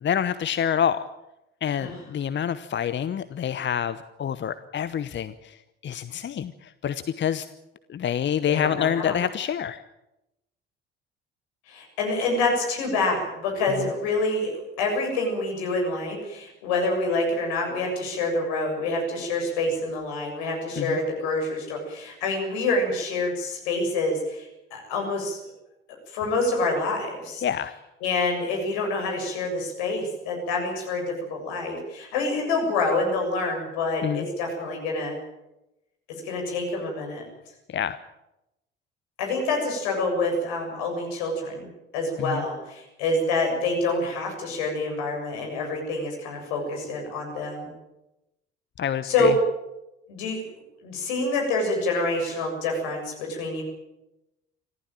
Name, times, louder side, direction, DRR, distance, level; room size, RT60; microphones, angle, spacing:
voice 1, 0.0-1.0 1.6-5.6 5.8-7.4 7.9-9.8 20.8-21.0 27.4-27.7 34.0-34.3 37.7-38.0 42.2-42.4 48.8-49.3, left 9 dB, 35° left, 14 dB, 1.0 m, -27 dB
voice 2, 8.5-9.2 11.7-25.4 26.1-27.4 28.0-35.2 36.2-37.3 39.2-41.7 41.9-47.7 49.0-49.4 50.1-50.4 50.8-53.6, left 2 dB, 70° left, 2 dB, 7.3 m, -27 dB
25.5 x 15.5 x 9.1 m, 0.92 s
figure-of-eight pair, 50°, 31 cm